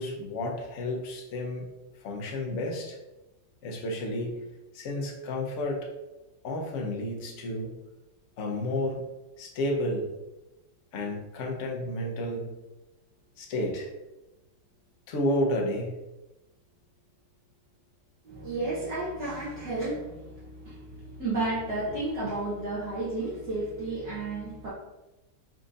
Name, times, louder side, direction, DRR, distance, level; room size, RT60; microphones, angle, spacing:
voice 1, 0.0-1.7 2.0-3.0 3.6-4.4 4.7-5.9 6.4-7.8 8.4-9.0 9.4-10.1 10.9-12.5 13.4-13.9 15.1-16.0, left 1 dB, 50° left, -1 dB, 0.9 m, -31 dB
voice 2, 18.2-24.7, right 2 dB, 60° right, -7 dB, 1.4 m, -32 dB
4.4 x 2.5 x 3.9 m, 0.98 s
omnidirectional pair, 2.1 m